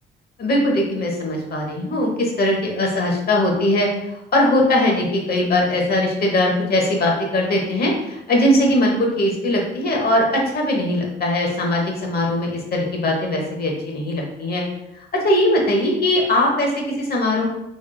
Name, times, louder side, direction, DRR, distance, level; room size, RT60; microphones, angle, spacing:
voice 1, 0.4-14.6 15.2-17.4, left 1 dB, 50° left, 0 dB, 1.0 m, -20 dB
3.5 x 3.1 x 2.2 m, 0.85 s
cardioid pair, 90°, 20 cm